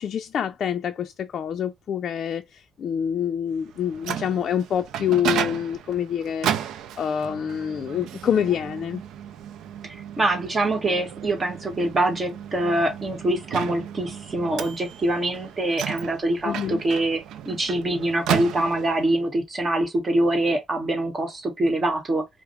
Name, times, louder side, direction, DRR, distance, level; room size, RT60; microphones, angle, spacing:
voice 1, 0.0-6.5 7.0-9.0 16.4-16.8, left 9 dB, 60° left, 0.4 m, -26 dB
Microwave oven, 3.7-19.1, right 10 dB, 85° right, 0.4 m, -34 dB
voice 2, 9.8-22.3, right 1 dB, 35° right, 1.3 m, -24 dB
4.8 x 2.0 x 3.0 m
cardioid pair, 90°, 0 cm